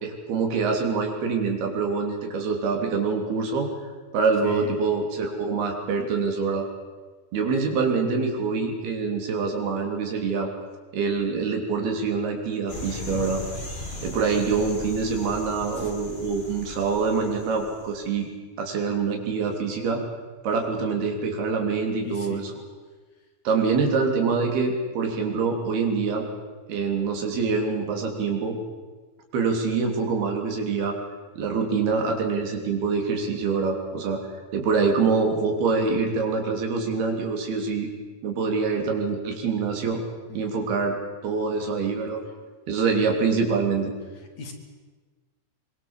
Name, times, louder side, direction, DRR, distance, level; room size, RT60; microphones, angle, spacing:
voice 1, 0.0-3.7 4.1-6.7 7.3-10.5 10.9-13.4 14.0-18.3 18.6-20.0 20.4-22.5 23.5-26.3 26.7-28.6 29.3-31.0 31.4-34.2 34.5-37.9 38.2-40.0 40.3-41.0 41.2-42.2 42.7-43.9, right 4 dB, 80° right, 2 dB, 5.2 m, -25 dB
voice 2, 4.4-4.8 12.7-13.2 22.0-22.5 40.3-40.6 44.4-44.5, left 5 dB, 50° left, 4 dB, 3.6 m, -37 dB
sound 1, 12.7-18.1, left 1 dB, 15° left, 3.1 m, -38 dB
24.0 x 23.0 x 7.4 m, 1.4 s
omnidirectional pair, 4.4 m